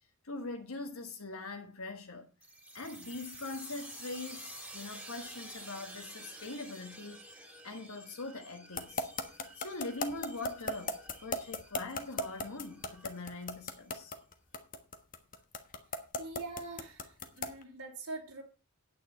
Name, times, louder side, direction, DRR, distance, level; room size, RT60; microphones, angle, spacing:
voice 1, 0.2-2.3 2.7-9.1 9.5-14.2 17.7-17.8, left 3 dB, 70° left, 1.4 m, -42 dB
sound 1, 2.4-13.8, right 1 dB, 5° right, 2.5 m, -50 dB
sound 2, 8.8-17.6, left 2 dB, 40° left, 1.4 m, -35 dB
voice 2, 16.2-18.4, right 3 dB, 75° right, 3.2 m, -43 dB
9.5 x 9.0 x 4.4 m
head